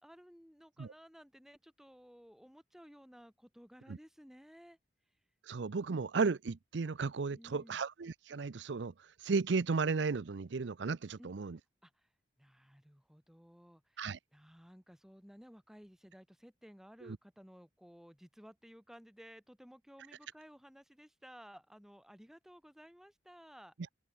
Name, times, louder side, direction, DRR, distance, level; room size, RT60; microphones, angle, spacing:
voice 1, 0.0-4.8 7.3-7.8 11.2-11.3 11.8-12.1 12.4-23.7, equal, 5° right, 5.3 m, -57 dB
voice 2, 5.4-11.6 14.0-14.2 17.0-17.2, right 4 dB, 85° right, 0.6 m, -34 dB
open air
head